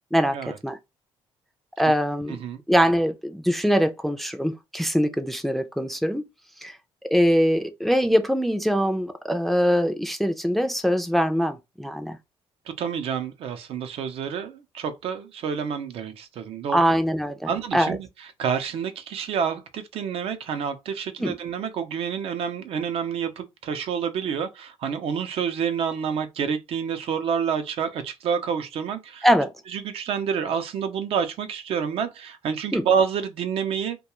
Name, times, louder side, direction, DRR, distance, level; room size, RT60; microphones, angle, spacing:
voice 1, 0.1-0.8 1.8-2.4 2.7-6.3 6.6-6.8 7.1-12.2 16.7-18.0 21.2-21.4 29.2-29.5 32.7-32.9, equal, ahead, 0.3 m, -23 dB
voice 2, 2.3-2.6 12.8-16.8 17.5-18.1 18.4-29.3 29.7-34.0, right 7 dB, 70° right, 0.5 m, -28 dB
2.3 x 2.2 x 2.9 m
cardioid pair, 105°, 10 cm